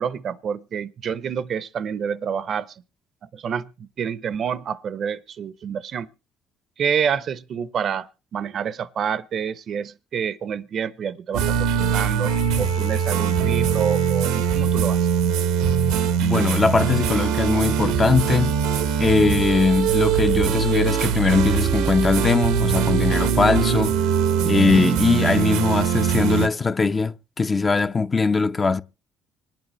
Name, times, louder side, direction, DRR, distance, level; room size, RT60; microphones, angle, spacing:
voice 1, 0.0-2.7 3.3-6.1 6.8-15.0, right 7 dB, 55° right, 0.6 m, -28 dB
sound 1, 11.3-26.5, right 7 dB, 90° right, 0.8 m, -22 dB
voice 2, 16.2-18.6 19.0-23.9 24.4-28.8, left 4 dB, 30° left, 0.6 m, -20 dB
25.5 x 9.0 x 3.0 m
supercardioid pair, 80°, 0 cm